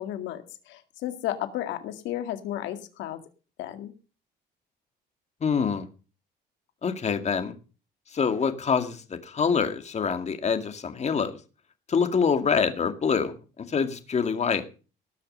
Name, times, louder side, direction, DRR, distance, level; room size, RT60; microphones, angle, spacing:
voice 1, 0.0-3.2 3.6-3.9, left 12 dB, 90° left, 8 dB, 2.1 m, -33 dB
voice 2, 5.4-5.9 6.8-7.5 8.1-11.4 11.9-13.3 13.7-14.6, left 6 dB, 40° left, 8 dB, 2.2 m, -25 dB
18.5 x 6.5 x 6.7 m, 0.36 s
cardioid pair, 110°, 18 cm